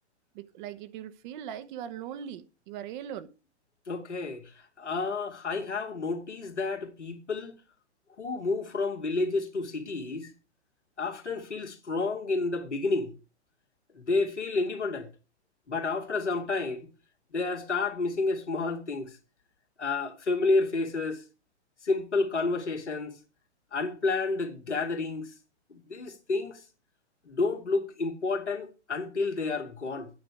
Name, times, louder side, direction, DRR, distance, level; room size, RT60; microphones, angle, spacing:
voice 1, 0.3-3.3, right 9 dB, 45° right, 1.0 m, -40 dB
voice 2, 3.9-7.6 8.2-10.3 11.0-13.1 13.9-15.1 15.7-16.9 17.3-19.2 19.8-21.2 21.8-23.1 23.7-25.3 25.7-26.6 27.3-30.1, left 3 dB, 90° left, 2.4 m, -30 dB
9.5 x 8.8 x 4.8 m
hypercardioid pair, 115°, 34 cm